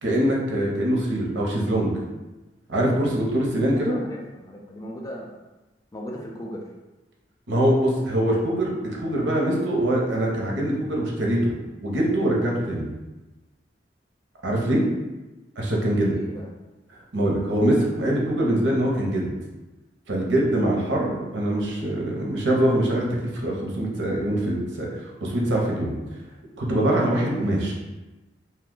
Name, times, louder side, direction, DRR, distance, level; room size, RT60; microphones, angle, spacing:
voice 1, 0.0-1.9 2.7-3.9 7.5-11.5 11.8-12.9 14.4-14.8 15.6-16.2 17.1-19.3 20.1-23.1 23.3-25.9 26.6-27.7, right 1 dB, 85° right, -2 dB, 0.7 m, -23 dB
voice 2, 3.8-5.4 5.9-6.7 15.8-16.5, equal, 20° left, -1 dB, 0.4 m, -38 dB
2.8 x 2.3 x 3.7 m, 1.1 s
head